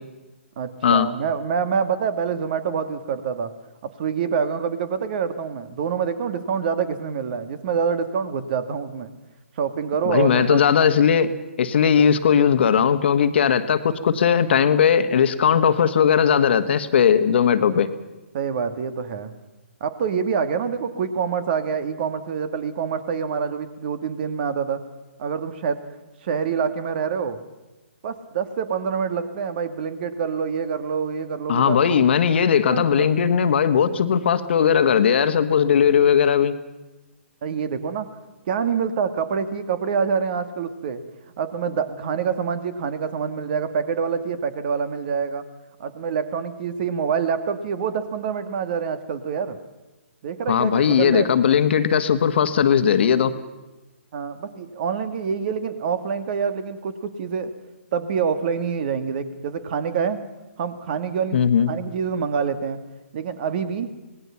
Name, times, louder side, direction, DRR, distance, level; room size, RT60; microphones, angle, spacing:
voice 1, 0.6-3.5 3.8-9.1 9.6-10.6 12.0-12.1 18.3-19.3 19.8-24.8 25.2-25.8 26.2-27.4 28.0-32.0 32.7-33.1 37.4-38.1 38.5-41.0 41.4-45.4 45.8-49.6 50.2-51.3 54.1-57.5 57.9-60.2 60.6-62.8 63.1-63.9, right 6 dB, 45° right, 11 dB, 2.0 m, -26 dB
voice 2, 10.0-11.3 11.6-17.9 31.5-36.5 50.5-53.3 61.3-61.7, left 7 dB, 55° left, 10 dB, 1.5 m, -18 dB
25.5 x 19.5 x 5.9 m, 1.1 s
hypercardioid pair, 140°, 7 cm